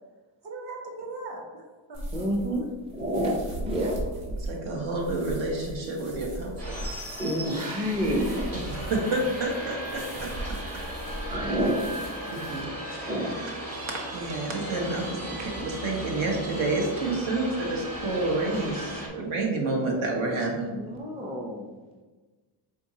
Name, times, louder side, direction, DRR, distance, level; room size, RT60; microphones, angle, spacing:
voice 1, 0.4-1.6 1.9-2.3 8.1-8.3 10.1-10.2 11.3-11.7, right 2 dB, 50° right, 0 dB, 1.1 m, -38 dB
sound 1, 1.9-12.6, right 1 dB, 90° right, 1.4 m, -39 dB
voice 2, 2.1-2.7 2.9-4.1 7.2-8.5 11.1-11.8 13.1-13.3 20.4-21.8, equal, 15° right, 0 dB, 0.4 m, -29 dB
voice 3, 4.4-7.0 8.7-10.3 12.3-13.1 14.1-20.7, right 2 dB, 70° right, 0 dB, 1.1 m, -29 dB
sound 2, 6.6-19.1, right 1 dB, 30° right, 1.3 m, -36 dB
4.5 x 3.7 x 2.7 m, 1.3 s
cardioid pair, 120°, 49 cm